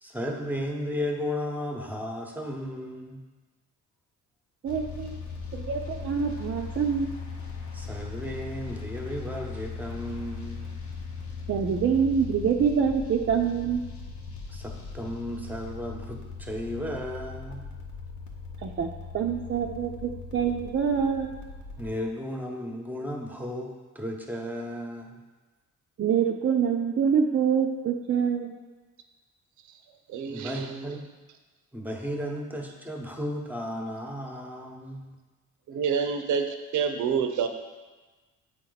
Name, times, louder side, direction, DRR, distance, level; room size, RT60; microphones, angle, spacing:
voice 1, 0.0-3.2 7.7-10.7 14.5-17.6 21.8-25.2 30.3-31.0 31.7-35.1, equal, 5° right, 1 dB, 1.0 m, -34 dB
voice 2, 4.6-5.2 5.5-7.1 11.5-13.8 18.6-21.3 26.0-28.5, right 7 dB, 45° right, 0 dB, 0.6 m, -26 dB
sound 1, 4.7-21.9, left 5 dB, 70° left, 1.1 m, -39 dB
voice 3, 30.1-31.0 35.7-37.5, right 6 dB, 75° right, 7 dB, 0.7 m, -28 dB
8.0 x 4.4 x 4.0 m, 1.3 s
cardioid pair, 90°, 30 cm